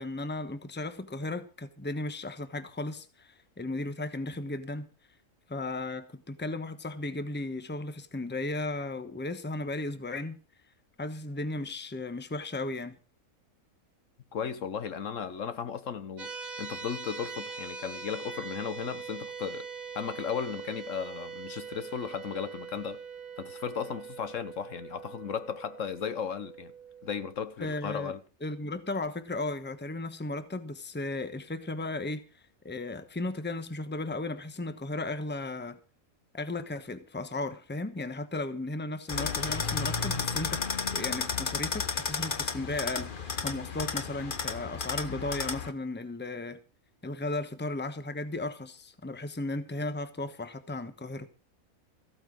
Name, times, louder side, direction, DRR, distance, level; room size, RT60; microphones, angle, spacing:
voice 1, 0.0-4.9 5.5-10.4 11.0-13.0 27.6-28.1 28.4-35.8 36.3-40.6 40.9-46.6 47.0-51.3, left 2 dB, 10° left, 1.0 m, -35 dB
voice 2, 14.3-19.7 19.9-23.0 23.4-26.7 27.0-28.2, left 7 dB, 65° left, 1.3 m, -35 dB
sound 1, 16.2-27.3, right 5 dB, 75° right, 1.6 m, -42 dB
sound 2, 39.1-45.7, left 5 dB, 40° left, 1.2 m, -32 dB
15.0 x 8.9 x 6.2 m
omnidirectional pair, 1.5 m